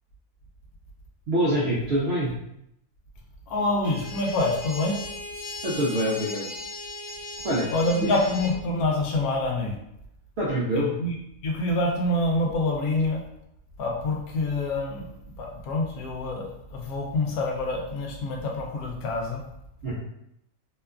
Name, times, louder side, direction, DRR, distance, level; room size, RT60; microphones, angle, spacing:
voice 1, 1.3-2.3 5.6-6.5 7.4-7.7 8.0-8.1 10.4-10.9 19.8-20.0, equal, 65° right, -6 dB, 0.6 m, -25 dB
voice 2, 3.5-4.9 7.7-9.7 10.7-11.2 11.4-13.2 13.8-15.1 15.4-19.4, left 2 dB, 75° left, 0 dB, 1.1 m, -26 dB
sound 1, 3.8-8.5, left 2 dB, 20° left, 0.9 m, -38 dB
2.9 x 2.2 x 2.3 m, 0.78 s
omnidirectional pair, 1.6 m